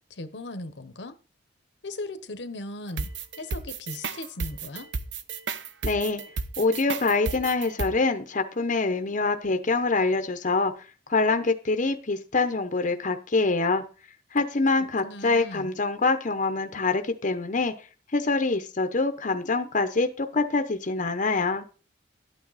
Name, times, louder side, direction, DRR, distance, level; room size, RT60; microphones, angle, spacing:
voice 1, 0.1-1.2 1.8-3.1 3.4-4.9 14.8-15.7, left 2 dB, 75° left, 12 dB, 1.0 m, -38 dB
sound 1, 3.0-7.9, right 4 dB, 85° right, 0.9 m, -32 dB
voice 2, 5.8-6.2 6.6-10.7 11.1-13.8 14.3-17.7 18.1-21.6, left 3 dB, 45° left, 7 dB, 0.9 m, -25 dB
12.0 x 8.8 x 4.1 m, 0.36 s
head